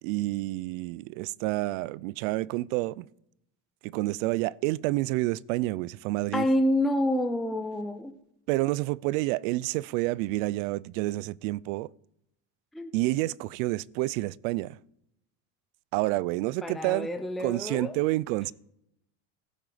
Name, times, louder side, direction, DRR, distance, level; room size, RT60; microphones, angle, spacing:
voice 1, 0.0-3.1 3.8-6.5 8.5-11.9 12.9-14.8 15.9-17.1 17.4-18.5, right 19 dB, 85° right, 0.6 m, -29 dB
voice 2, 6.3-8.1 12.7-12.9 16.6-17.9, left 1 dB, ahead, 0.6 m, -28 dB
16.0 x 14.0 x 5.1 m
cardioid pair, 150°, 39 cm